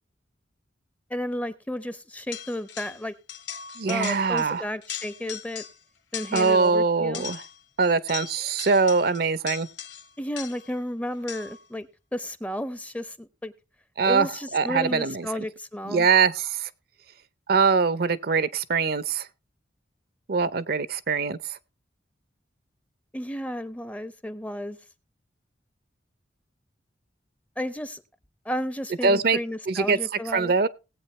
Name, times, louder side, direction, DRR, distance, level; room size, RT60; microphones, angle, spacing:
voice 1, 1.1-3.1 3.9-5.6 6.1-7.2 10.2-13.5 14.0-16.1 23.1-24.8 27.6-28.0 28.4-30.5, equal, 10° left, 0.6 m, -32 dB
sound 1, 2.3-3.0 3.3-4.5 4.8-5.8 6.1-6.7 7.1-10.8 11.3-11.7, left 9 dB, 80° left, 1.3 m, -39 dB
voice 2, 3.8-4.7 6.3-7.4 7.8-9.7 14.0-14.3 14.5-15.4 15.9-16.7 17.5-19.3 20.3-21.6 29.0-29.4 29.7-30.0 30.3-30.7, right 4 dB, 55° right, 0.6 m, -23 dB
19.5 x 8.2 x 3.1 m
head